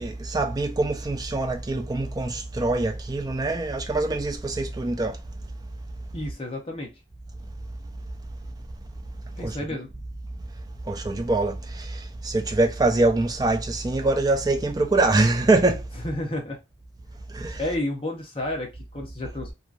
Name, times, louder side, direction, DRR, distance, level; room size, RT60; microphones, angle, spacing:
voice 1, 0.0-5.2 9.4-9.6 10.9-15.8 17.3-17.6, right 2 dB, 20° right, 0.3 m, -24 dB
voice 2, 6.1-7.0 9.4-9.9 16.0-16.6 17.6-19.5, left 1 dB, 30° left, 0.7 m, -31 dB
2.7 x 2.3 x 2.4 m
head